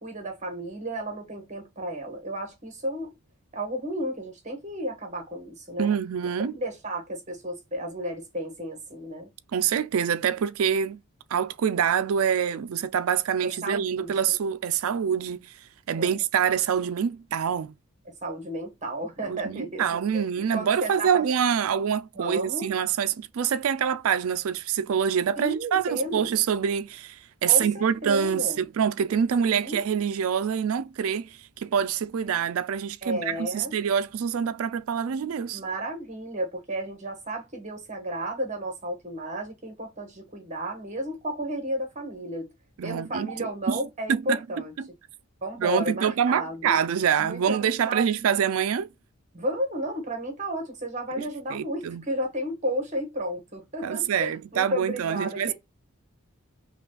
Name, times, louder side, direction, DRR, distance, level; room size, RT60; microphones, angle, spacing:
voice 1, 0.0-3.1 3.5-5.9 6.4-9.3 13.4-14.3 15.9-16.2 18.2-19.9 20.1-21.2 22.1-22.7 25.4-26.3 27.5-28.6 29.4-29.8 33.0-33.7 35.5-42.5 42.8-44.7 45.4-46.8 47.2-48.1 49.3-55.5, right 1 dB, 35° right, 1.3 m, -33 dB
voice 2, 5.8-6.5 9.5-11.0 11.3-15.5 15.9-17.7 19.2-35.6 42.8-43.8 44.1-44.4 44.8-44.9 45.6-48.9 51.2-51.3 51.5-52.0 53.8-55.5, right 7 dB, 70° right, 0.4 m, -26 dB
5.8 x 2.3 x 2.2 m
head